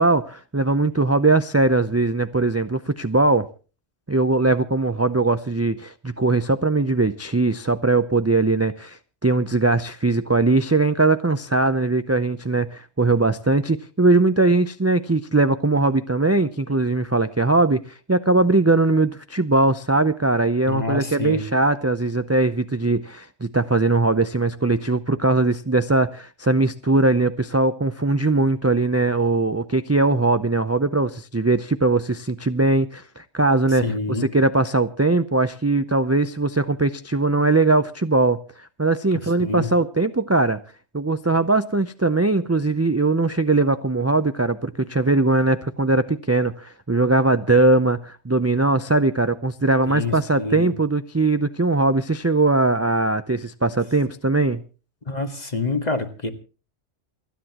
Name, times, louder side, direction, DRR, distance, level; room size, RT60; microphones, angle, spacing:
voice 1, 0.0-3.5 4.1-33.8 34.2-38.4 38.8-40.6 40.9-54.6, right 2 dB, 20° right, 0.4 m, -20 dB
voice 2, 20.7-21.4 33.7-34.3 39.1-39.7 49.9-50.7 55.1-56.3, left 3 dB, 35° left, 1.9 m, -27 dB
28.5 x 10.0 x 3.0 m
omnidirectional pair, 1.2 m